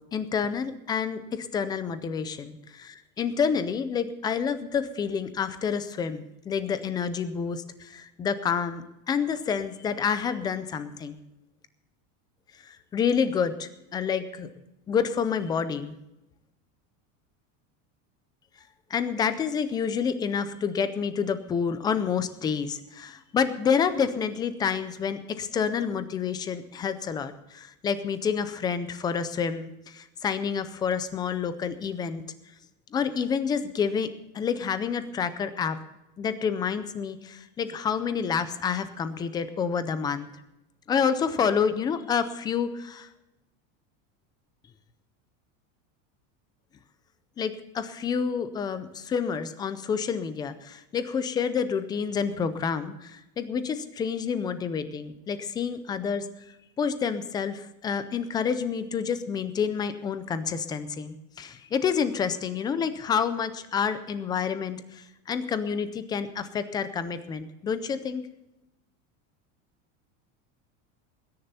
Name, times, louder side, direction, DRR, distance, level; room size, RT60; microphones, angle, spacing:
voice 1, 0.1-11.2 12.6-14.5 14.9-16.0 18.9-32.2 32.9-34.1 34.3-35.8 36.2-40.3 40.9-43.1 47.4-56.3 56.8-68.2, left 6 dB, 10° left, 12 dB, 0.4 m, -28 dB
20.5 x 10.5 x 4.2 m, 0.92 s
cardioid pair, 180°, 38 cm